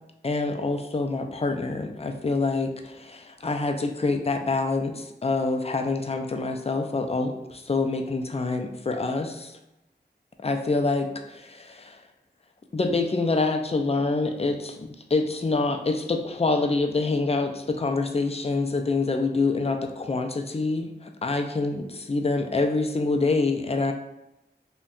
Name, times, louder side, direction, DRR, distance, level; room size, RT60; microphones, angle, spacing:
voice 1, 0.2-9.5 10.4-12.0 12.7-23.9, left 3 dB, 35° left, 5 dB, 0.4 m, -26 dB
2.6 x 2.2 x 3.7 m, 0.91 s
wide cardioid pair, 45°, 18 cm